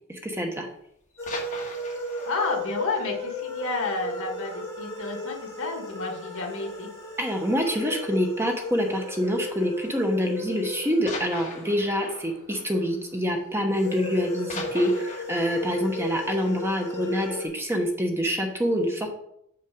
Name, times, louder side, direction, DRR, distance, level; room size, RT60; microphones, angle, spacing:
voice 1, 0.1-0.7 7.2-19.1, equal, 10° right, 2 dB, 1.0 m, -26 dB
sound 1, 1.0-4.6 4.9-5.0 5.4-5.6 5.9-6.0 6.8-7.3 8.5-8.7 9.6-9.7 11.1-13.9 14.1-17.2 17.7-17.8, left 3 dB, 35° left, 1.7 m, -41 dB
sound 2, 1.2-12.9 13.7-17.5, left 2 dB, 10° left, 2.7 m, -36 dB
voice 2, 2.2-6.9, left 3 dB, 65° left, 2 dB, 1.8 m, -31 dB
6.7 x 5.6 x 5.2 m, 0.73 s
head